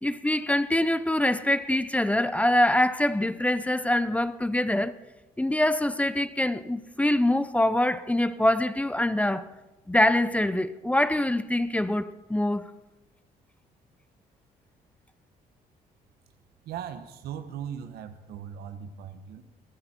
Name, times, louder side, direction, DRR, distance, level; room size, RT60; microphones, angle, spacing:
voice 1, 0.0-5.0 5.4-9.5 9.9-12.6, left 1 dB, 10° left, 0.7 m, -24 dB
voice 2, 16.6-19.4, right 8 dB, 85° right, 1.2 m, -38 dB
21.5 x 13.5 x 4.5 m
cardioid pair, 100°, 16 cm